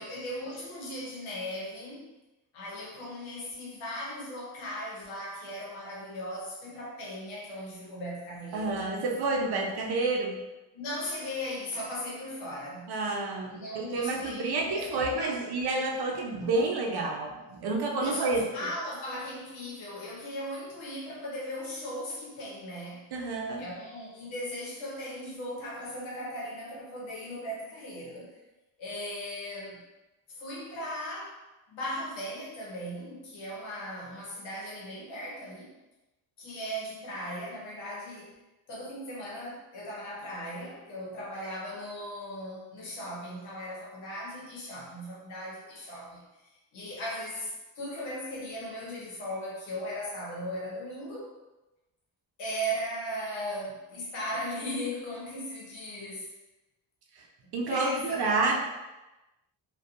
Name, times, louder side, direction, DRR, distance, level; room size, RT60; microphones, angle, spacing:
voice 1, 0.0-2.1 2.5-8.8 10.7-12.9 13.4-15.4 17.9-23.1 23.5-28.4 28.8-29.8 30.4-31.4 31.7-35.7 36.4-38.3 38.7-51.3 52.4-56.3 57.4-58.6, equal, 90° left, -5 dB, 1.0 m, -37 dB
voice 2, 8.5-10.4 12.9-18.4 23.1-23.7 57.1-57.3 57.5-58.6, right 3 dB, 55° right, 1 dB, 0.6 m, -29 dB
2.6 x 2.3 x 2.4 m, 1.0 s
supercardioid pair, 65°, 46 cm